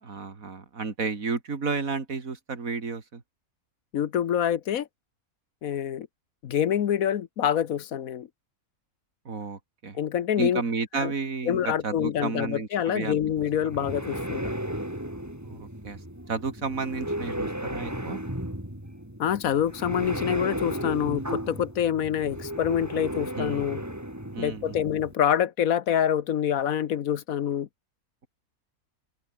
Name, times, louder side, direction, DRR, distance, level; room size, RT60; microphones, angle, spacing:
voice 1, 0.0-3.2 9.3-10.0 10.4-13.2 15.4-16.0 16.3-18.2 23.4-23.6 24.3-24.8, right 4 dB, 65° right, 2.9 m, -32 dB
voice 2, 3.9-4.9 5.6-6.1 6.4-8.3 9.9-10.6 10.9-11.1 11.4-14.5 19.2-23.8 24.4-27.7, left 9 dB, 75° left, 1.4 m, -26 dB
sound 1, 13.4-25.1, equal, 10° right, 4.9 m, -34 dB
open air
omnidirectional pair, 1.5 m